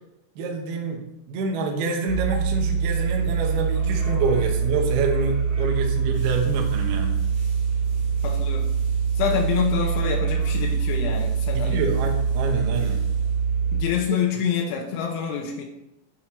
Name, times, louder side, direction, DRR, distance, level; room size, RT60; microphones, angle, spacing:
voice 1, 0.4-1.0 1.3-7.2 11.5-13.0, right 4 dB, 75° right, 2 dB, 2.5 m, -27 dB
sound 1, 2.1-13.8, right 6 dB, 50° right, 3.0 m, -24 dB
voice 2, 8.2-8.7 9.2-11.8 13.7-15.6, left 7 dB, 90° left, 1 dB, 3.2 m, -26 dB
7.5 x 5.6 x 4.5 m, 0.91 s
omnidirectional pair, 5.2 m